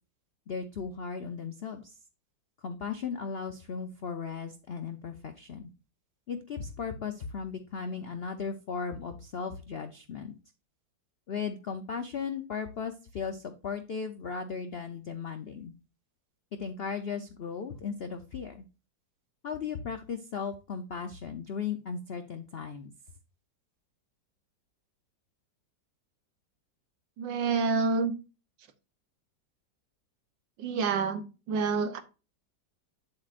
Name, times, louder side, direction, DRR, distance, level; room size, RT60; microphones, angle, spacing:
voice 1, 0.5-2.0 2.6-5.7 6.3-10.3 11.3-15.7 16.6-18.6 19.4-22.9, left 6 dB, 85° left, 8 dB, 0.5 m, -36 dB
voice 2, 27.2-28.1 30.6-32.0, right 4 dB, 80° right, 9 dB, 1.6 m, -28 dB
8.5 x 7.7 x 2.5 m, 0.32 s
omnidirectional pair, 2.0 m